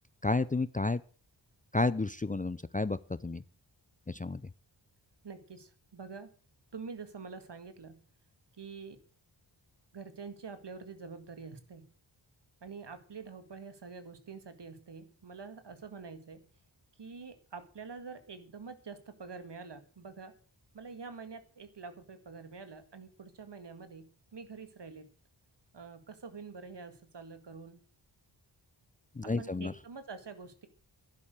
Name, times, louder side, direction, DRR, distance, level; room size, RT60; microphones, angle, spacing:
voice 1, 0.2-1.0 1.7-3.4 4.1-4.4 29.2-29.7, left 3 dB, 20° left, 15 dB, 0.5 m, -31 dB
voice 2, 5.2-6.3 6.7-8.0 8.6-9.0 9.9-11.9 12.6-16.4 17.0-20.3 20.7-25.1 25.7-27.8 29.2-30.7, right 5 dB, 60° right, 9 dB, 2.0 m, -46 dB
11.5 x 10.5 x 6.6 m, 0.40 s
wide cardioid pair, 80°, 46 cm